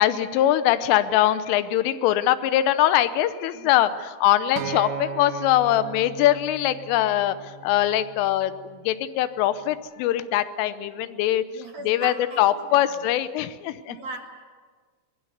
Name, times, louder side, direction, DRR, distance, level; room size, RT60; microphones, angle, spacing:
voice 1, 0.0-3.9 4.2-7.4 7.6-8.5 8.9-11.4 11.9-14.0, left 13 dB, 80° left, 13 dB, 3.2 m, -22 dB
voice 2, 3.5-4.0 11.5-12.9 13.9-14.2, right 3 dB, 60° right, 2 dB, 2.7 m, -39 dB
Acoustic guitar, 4.6-8.8 9.7-9.8, right 5 dB, 80° right, 4.0 m, -37 dB
23.0 x 20.5 x 8.0 m, 1.5 s
omnidirectional pair, 6.0 m